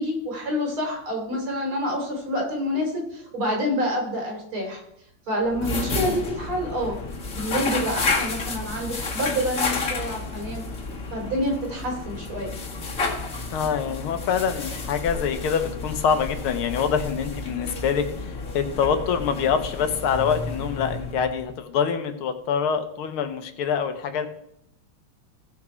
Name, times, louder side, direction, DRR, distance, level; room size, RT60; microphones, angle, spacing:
voice 1, 0.0-4.8 5.3-7.0 7.3-10.7 11.1-12.5, equal, 80° right, 0 dB, 3.9 m, -27 dB
sound 1, 5.4-21.6, left 3 dB, 40° left, 2.1 m, -31 dB
voice 2, 13.5-24.3, left 7 dB, 85° left, 8 dB, 1.9 m, -25 dB
15.5 x 6.1 x 4.4 m, 0.76 s
omnidirectional pair, 2.3 m